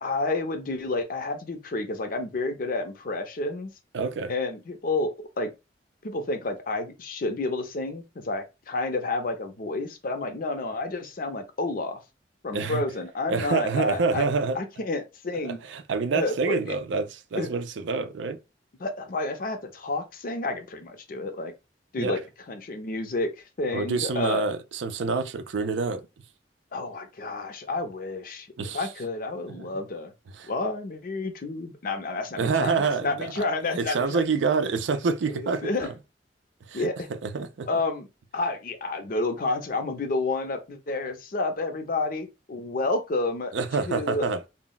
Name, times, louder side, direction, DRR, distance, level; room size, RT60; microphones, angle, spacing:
voice 1, 0.0-3.7 4.3-5.1 5.4-5.5 6.0-12.0 12.4-14.3 14.5-15.6 16.1-16.7 17.4-17.5 18.8-21.5 21.9-22.2 22.5-23.3 23.6-24.5 26.7-28.5 28.7-30.1 30.5-34.2 35.3-35.9 36.7-37.1 37.7-38.1 38.3-43.5 43.9-44.2, left 2 dB, 50° left, 0.5 m, -30 dB
voice 2, 3.9-4.3 12.5-12.8 13.3-14.6 15.4-18.4 22.0-22.2 23.7-26.1 28.6-28.9 29.6-29.7 30.3-30.5 32.4-33.4 33.8-35.9 36.7-37.7 43.5-44.4, right 4 dB, 80° right, 0.4 m, -27 dB
2.2 x 2.0 x 3.8 m
head